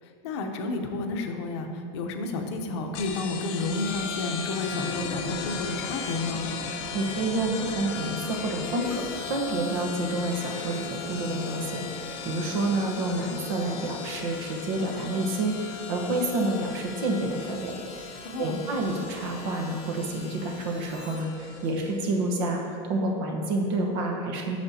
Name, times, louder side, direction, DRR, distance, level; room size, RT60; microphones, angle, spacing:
voice 1, 0.0-6.5 18.2-18.7, left 3 dB, 70° left, 4 dB, 0.8 m, -31 dB
sound 1, 2.9-22.1, left 5 dB, 35° left, 0.6 m, -37 dB
voice 2, 6.9-9.0 9.3-18.1 18.4-24.6, right 2 dB, 55° right, 2 dB, 1.1 m, -29 dB
Harmonica, 8.8-21.2, left 1 dB, 5° right, 0.8 m, -51 dB
9.4 x 6.7 x 2.8 m, 2.6 s
supercardioid pair, 175°, 15 cm